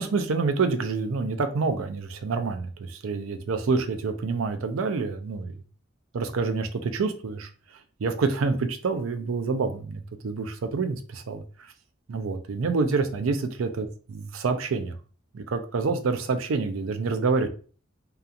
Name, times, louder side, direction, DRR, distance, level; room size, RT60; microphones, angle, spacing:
voice 1, 0.0-5.6 6.1-11.4 12.1-13.9 14.2-14.9 15.3-17.5, right 4 dB, 80° right, 8 dB, 0.4 m, -27 dB
2.8 x 2.3 x 2.4 m, 0.39 s
head